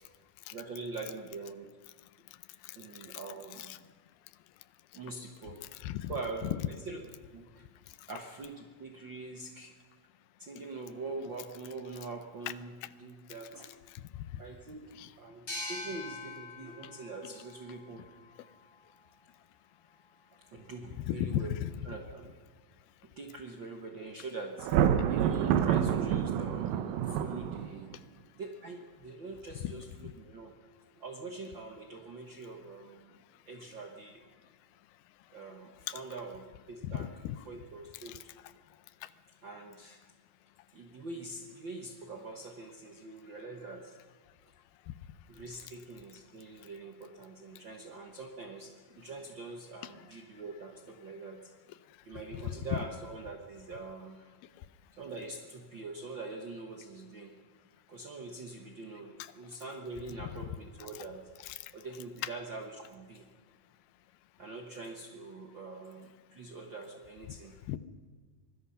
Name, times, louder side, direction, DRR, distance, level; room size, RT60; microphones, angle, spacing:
voice 1, 0.5-1.7 2.7-3.8 4.9-5.7 6.1-7.7 8.1-9.7 10.4-12.7 13.0-13.7 14.4-18.1 20.5-21.5 21.8-22.3 23.2-24.7 25.1-27.9 28.4-30.5 30.9-34.3 35.3-37.1 37.5-38.3 39.4-40.0 40.7-44.0 45.3-51.5 52.0-54.3 54.9-57.4 57.9-61.3 61.7-63.3 64.4-67.6, right 3 dB, 60° right, 3 dB, 1.2 m, -44 dB
voice 2, 5.7-6.1 6.4-6.5 10.6-10.7 14.9-15.1 21.0-21.9 29.6-29.7 35.9-36.0 36.8-37.4 38.1-38.2 49.8-49.9 52.3-52.8 59.2-59.3 60.4-60.5 61.0-61.1 61.4-61.6 67.7-67.8, left 12 dB, 90° left, 15 dB, 2.7 m, -36 dB
sound 1, 15.5-18.8, left 2 dB, 30° left, 6.0 m, -44 dB
Thunder, 24.6-27.9, right 9 dB, 75° right, 2.7 m, -28 dB
24.0 x 19.5 x 5.7 m, 1.5 s
omnidirectional pair, 4.2 m